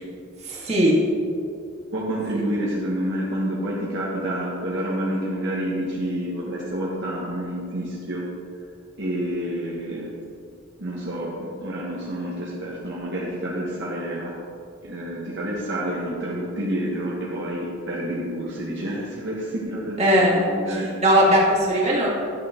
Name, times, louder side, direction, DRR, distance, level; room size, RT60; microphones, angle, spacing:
voice 1, 0.4-0.9 20.0-20.4 20.7-22.1, equal, 30° right, -6 dB, 2.2 m, -19 dB
voice 2, 1.9-8.3 9.0-10.1 10.8-14.3 14.8-20.9, right 1 dB, 60° right, -6 dB, 1.4 m, -28 dB
11.5 x 6.5 x 3.7 m, 2.5 s
head